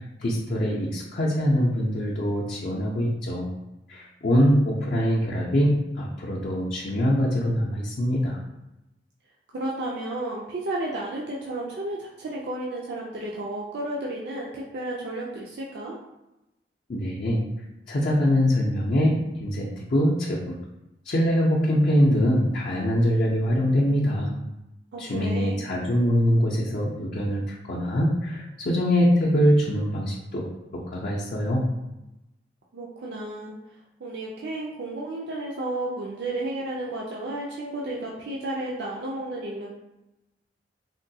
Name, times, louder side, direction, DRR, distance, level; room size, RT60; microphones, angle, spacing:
voice 1, 0.2-3.5 3.9-8.4 16.9-17.4 17.9-20.6 21.0-24.3 25.0-30.4 30.7-31.6, equal, 50° left, -5 dB, 0.5 m, -23 dB
voice 2, 9.5-16.0 24.9-25.6 32.7-33.5 34.0-39.7, right 2 dB, 65° right, -4 dB, 0.4 m, -32 dB
3.5 x 2.2 x 2.6 m, 0.95 s
head